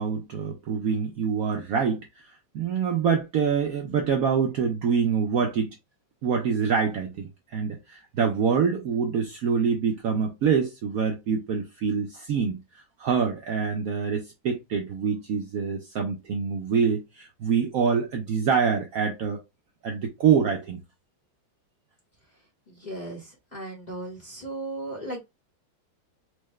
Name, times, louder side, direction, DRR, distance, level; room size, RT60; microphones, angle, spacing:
voice 1, 0.0-5.7 6.2-12.6 13.0-19.4 19.8-20.8, right 6 dB, 65° right, 0.9 m, -25 dB
voice 2, 22.7-25.2, right 2 dB, 30° left, 0.9 m, -36 dB
4.6 x 2.1 x 3.1 m
omnidirectional pair, 2.0 m